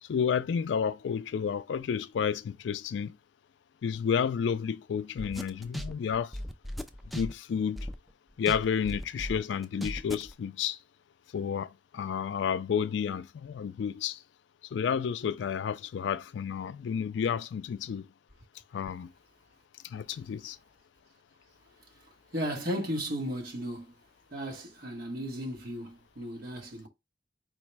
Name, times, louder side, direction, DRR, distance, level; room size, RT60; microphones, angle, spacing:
voice 1, 0.0-3.2 3.8-6.4 7.1-7.9 8.4-10.8 11.3-14.2 14.7-18.1 18.7-19.1 19.8-20.6, left 7 dB, 85° left, 0.3 m, -31 dB
sound 1, 5.2-8.1 8.5-10.3, equal, ahead, 0.3 m, -37 dB
voice 2, 22.3-23.9 24.3-26.9, equal, 55° right, 1.3 m, -35 dB
4.6 x 2.1 x 4.5 m
head